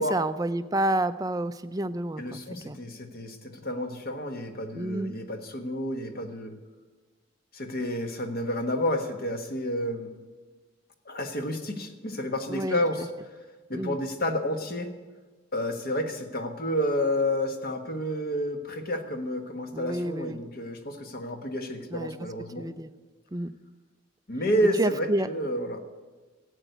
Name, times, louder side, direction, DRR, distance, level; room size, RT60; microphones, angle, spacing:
voice 1, 0.0-2.8 4.7-5.1 12.5-12.8 13.7-14.0 19.7-20.4 21.9-22.2 22.6-22.9 23.3-23.5 24.8-25.3, right 1 dB, 15° right, 12 dB, 0.4 m, -29 dB
voice 2, 2.2-6.5 7.5-10.1 11.0-13.1 13.7-14.9 15.5-22.7 24.3-25.8, equal, 45° left, 6 dB, 1.4 m, -30 dB
14.0 x 8.2 x 9.1 m, 1.3 s
head